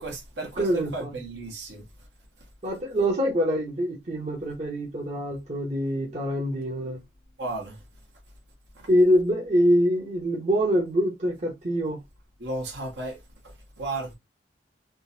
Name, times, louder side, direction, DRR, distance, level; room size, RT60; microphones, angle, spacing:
voice 1, 0.0-1.8 7.4-7.8 12.4-13.2 13.8-14.1, right 2 dB, 75° right, 1.4 m, -33 dB
voice 2, 0.6-1.2 2.6-7.0 8.9-12.0, equal, 40° right, 0.9 m, -24 dB
3.7 x 2.6 x 2.6 m
head